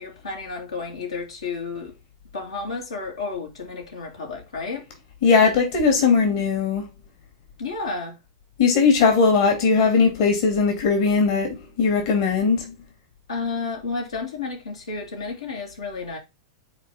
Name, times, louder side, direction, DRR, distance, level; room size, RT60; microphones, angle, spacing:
voice 1, 0.0-1.9 2.3-4.8 7.6-8.2 13.3-16.2, left 4 dB, 85° left, 2.9 m, -31 dB
voice 2, 5.2-6.9 8.6-12.7, left 5 dB, 60° left, 2.4 m, -19 dB
7.2 x 4.3 x 3.5 m
hypercardioid pair, 105°, 3 cm